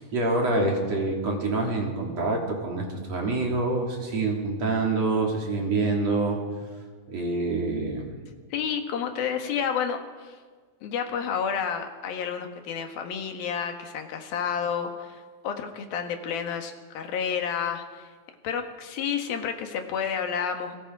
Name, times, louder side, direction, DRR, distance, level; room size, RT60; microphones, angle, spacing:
voice 1, 0.0-6.4 7.1-8.2, right 3 dB, 50° right, 0 dB, 4.3 m, -26 dB
voice 2, 8.5-10.4 10.8-18.1 18.4-20.8, left 7 dB, 90° left, 5 dB, 3.6 m, -30 dB
29.0 x 23.5 x 4.9 m, 1.5 s
omnidirectional pair, 4.1 m